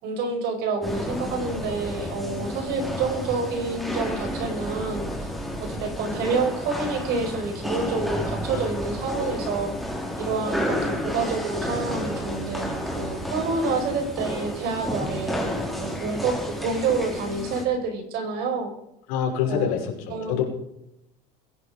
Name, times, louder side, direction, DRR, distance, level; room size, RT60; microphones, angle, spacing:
voice 1, 0.0-5.3 5.6-9.8 10.2-18.7 19.5-19.7 20.1-20.4, right 4 dB, 60° right, 4 dB, 5.3 m, -28 dB
sound 1, 0.8-17.6, equal, ahead, 4.5 m, -31 dB
voice 2, 19.1-20.4, left 8 dB, 90° left, 0 dB, 5.6 m, -26 dB
22.0 x 10.5 x 5.1 m, 0.83 s
cardioid pair, 135°, 19 cm